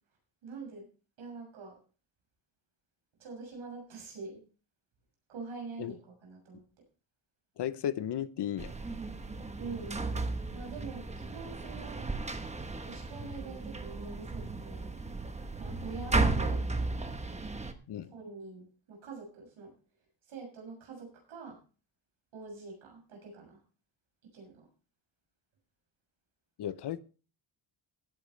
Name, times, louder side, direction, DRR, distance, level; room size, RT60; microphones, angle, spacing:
voice 1, 0.4-0.9 1.2-1.8 3.2-4.4 5.3-6.6 9.5-10.0 10.5-12.1 12.8-14.9 15.6-16.7 18.1-19.7 20.3-21.6 22.3-23.6 24.3-24.7, right 4 dB, 80° right, 1 dB, 7.0 m, -45 dB
voice 2, 7.6-8.7 16.1-16.3 17.9-18.1 26.6-27.0, left 10 dB, 60° left, 15 dB, 0.7 m, -34 dB
sound 1, 8.6-17.7, right 3 dB, 15° right, 0.9 m, -34 dB
17.0 x 10.0 x 3.2 m, 0.35 s
wide cardioid pair, 175°, 48 cm